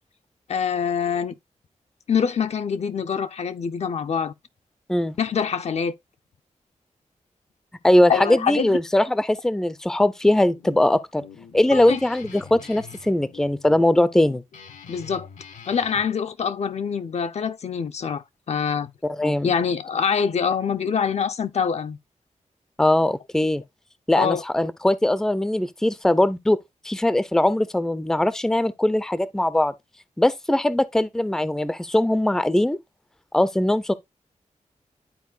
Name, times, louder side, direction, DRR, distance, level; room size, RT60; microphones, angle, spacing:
voice 1, 0.5-1.3 2.1-4.3 5.2-5.9 8.1-8.7 11.7-12.0 14.9-15.3 15.7-18.9 19.4-22.0 24.2-24.4, left 6 dB, 60° left, 0.5 m, -25 dB
voice 2, 7.8-11.2 11.5-14.4 19.1-19.5 22.8-23.6 24.1-26.6 26.8-29.7 30.2-32.8 33.3-33.9, left 1 dB, 5° left, 0.5 m, -20 dB
Guitar, 10.3-16.1, left 6 dB, 85° left, 1.0 m, -45 dB
12.0 x 4.4 x 2.4 m
wide cardioid pair, 150°, 13 cm